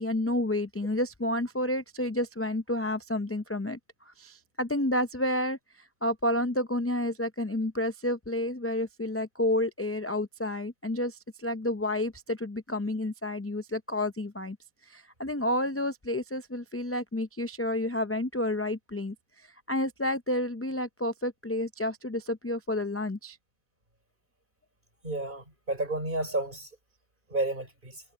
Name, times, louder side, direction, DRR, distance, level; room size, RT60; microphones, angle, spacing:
voice 1, 0.0-3.8 4.1-14.6 14.8-23.4, left 1 dB, 20° left, 0.4 m, -30 dB
voice 2, 25.0-26.7 27.3-28.0, right 2 dB, 45° right, 5.4 m, -31 dB
omnidirectional pair, 1.2 m